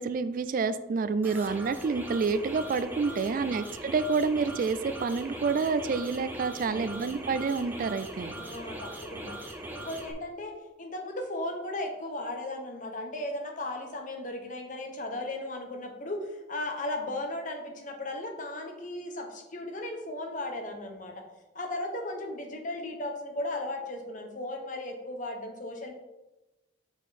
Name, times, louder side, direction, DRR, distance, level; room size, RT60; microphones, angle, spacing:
voice 1, 0.0-8.3, right 4 dB, 50° right, 13 dB, 0.3 m, -28 dB
sound 1, 1.2-10.1, right 1 dB, 10° right, 0.8 m, -40 dB
voice 2, 3.0-3.6 6.6-7.3 8.4-9.4 9.7-21.3 21.5-25.9, left 1 dB, 45° left, 3 dB, 1.0 m, -36 dB
6.4 x 5.0 x 4.2 m, 1.0 s
head